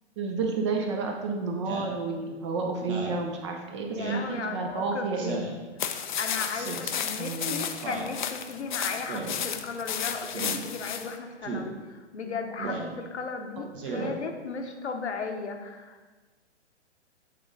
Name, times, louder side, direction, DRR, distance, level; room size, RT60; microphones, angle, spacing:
voice 1, 0.2-5.4 7.2-7.7 13.6-14.1, right 4 dB, 25° right, 3 dB, 0.5 m, -31 dB
Speech synthesizer, 1.6-2.0 2.8-3.2 4.0-4.3 5.2-5.6 6.5-6.9 7.8-8.1 9.1-9.4 10.3-10.6 11.4-11.7 12.6-12.9 13.7-14.1, right 3 dB, 50° right, 1.2 m, -35 dB
voice 2, 3.9-5.4 6.2-16.1, left 4 dB, 70° left, 4 dB, 0.9 m, -36 dB
sound 1, 5.8-11.1, left 8 dB, 45° left, 0.4 m, -33 dB
8.3 x 3.8 x 3.8 m, 1.3 s
figure-of-eight pair, 120°, 35 cm